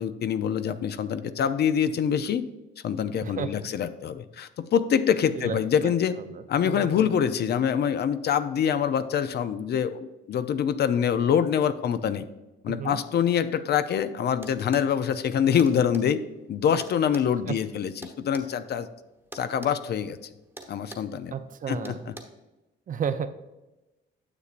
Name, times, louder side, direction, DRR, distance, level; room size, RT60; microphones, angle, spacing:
voice 1, 0.0-2.4 2.8-6.2 6.5-12.3 12.6-16.2 16.5-18.9 19.3-20.2 20.7-21.3 21.7-22.1, left 8 dB, 55° left, 12 dB, 0.5 m, -25 dB
voice 2, 3.2-3.7 5.4-5.9 6.3-7.0 12.7-13.0 17.5-17.6 21.3-22.1 22.9-23.3, right 7 dB, 40° right, 11 dB, 0.5 m, -33 dB
sound 1, 14.4-14.9 15.6-16.1 16.8-18.5 19.3-19.8 20.0-20.2 20.6-21.1 21.8-22.2, right 1 dB, 10° right, 1.0 m, -43 dB
9.7 x 6.6 x 2.5 m, 1.0 s
cardioid pair, 90°, 20 cm